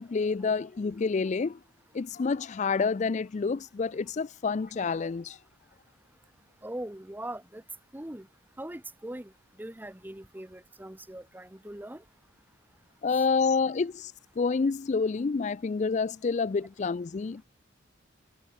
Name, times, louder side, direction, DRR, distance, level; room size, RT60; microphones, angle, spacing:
voice 1, 0.0-1.6 1.9-5.4 13.0-17.4, left 4 dB, 35° left, 0.4 m, -28 dB
voice 2, 6.6-7.6 7.9-8.3 8.6-9.3 9.6-12.0 13.1-13.2, right 1 dB, 10° right, 0.8 m, -41 dB
head